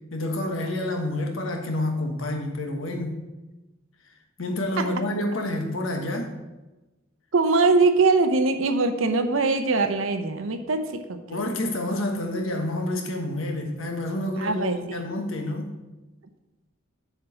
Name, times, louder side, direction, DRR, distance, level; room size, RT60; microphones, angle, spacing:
voice 1, 0.1-3.2 4.4-6.3 11.3-15.7, left 1 dB, 75° left, 3 dB, 1.4 m, -28 dB
voice 2, 7.3-11.4 14.4-15.1, right 3 dB, 80° right, 7 dB, 0.8 m, -22 dB
7.3 x 4.7 x 7.0 m, 1.1 s
head